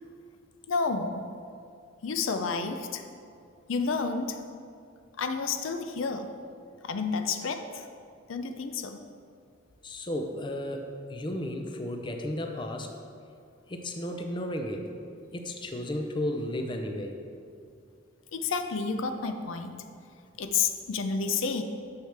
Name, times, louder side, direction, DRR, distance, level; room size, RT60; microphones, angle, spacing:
voice 1, 0.7-1.3 2.0-3.0 3.7-4.4 5.2-6.3 6.8-7.9 8.3-9.0 18.3-19.8 20.4-21.6, left 5 dB, 75° left, 7 dB, 0.5 m, -30 dB
voice 2, 9.8-12.9 13.7-14.9 15.3-17.2, left 1 dB, 25° left, 4 dB, 0.5 m, -33 dB
9.5 x 6.5 x 3.4 m, 2.4 s
head